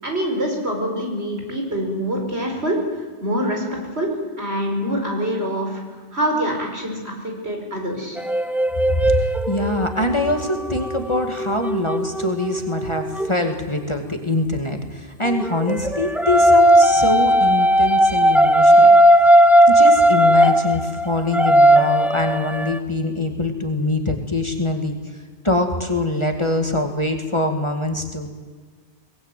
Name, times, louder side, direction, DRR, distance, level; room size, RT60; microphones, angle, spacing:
voice 1, 0.0-3.6 3.9-8.2, equal, 65° right, 1 dB, 5.6 m, -25 dB
sound 1, 8.2-13.3 15.3-22.8, right 1 dB, ahead, 0.5 m, -16 dB
voice 2, 8.9-18.9 19.7-28.3, left 2 dB, 25° left, 4 dB, 2.3 m, -24 dB
23.5 x 19.5 x 9.3 m, 1.5 s
omnidirectional pair, 1.2 m